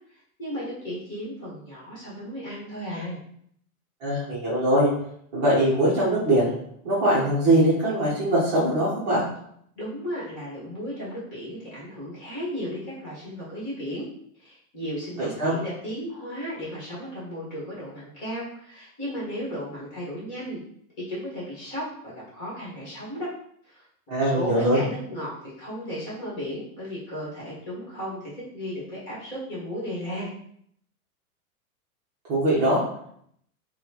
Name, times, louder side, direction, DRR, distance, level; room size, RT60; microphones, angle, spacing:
voice 1, 0.1-3.2 9.7-14.1 14.4-20.6 21.0-23.3 23.6-23.9 24.3-30.3, equal, 25° left, -7 dB, 1.4 m, -35 dB
voice 2, 4.0-4.9 5.3-6.5 6.8-9.3 15.2-15.6 24.1-24.8 32.3-32.8, right 1 dB, 30° right, -8 dB, 0.8 m, -22 dB
4.1 x 2.3 x 2.9 m, 0.68 s
supercardioid pair, 170°, 45 cm